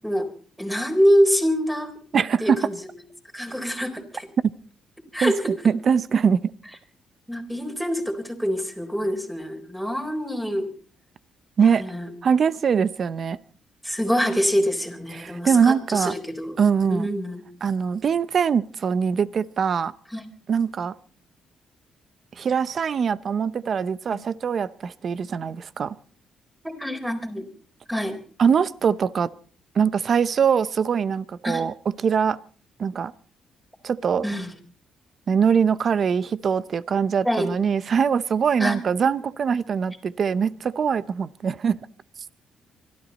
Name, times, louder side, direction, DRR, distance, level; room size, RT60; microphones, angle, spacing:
voice 1, 0.6-1.9 2.4-2.9 3.3-4.3 5.1-5.4 7.3-10.7 11.8-12.1 13.8-16.6 16.9-17.4 20.1-20.3 24.1-24.2 26.6-27.5 27.9-28.2 31.4-31.6 34.2-34.5 37.2-37.5 38.6-38.8, equal, 5° right, 4.0 m, -25 dB
voice 2, 2.1-2.6 5.2-5.3 5.6-6.5 11.6-11.8 12.2-13.4 15.1-16.1 16.6-17.1 17.6-19.9 20.5-20.9 22.4-26.0 28.4-29.3 29.7-32.4 32.8-33.1 33.8-34.3 35.3-41.8, right 6 dB, 50° right, 0.7 m, -22 dB
25.0 x 13.0 x 4.1 m
cardioid pair, 90°, 0 cm